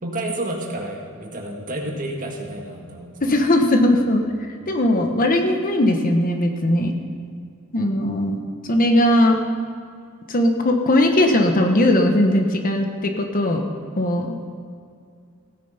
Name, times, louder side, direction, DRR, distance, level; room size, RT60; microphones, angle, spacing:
voice 1, 0.0-3.3 3.6-3.7 4.6-4.9 7.9-8.2, right 1 dB, 40° right, 1 dB, 1.8 m, -31 dB
voice 2, 3.2-4.2 4.7-6.9 7.7-8.4 8.6-9.4 10.3-13.6 14.0-14.4, left 1 dB, 40° left, 4 dB, 1.1 m, -19 dB
16.5 x 9.3 x 5.6 m, 2.3 s
head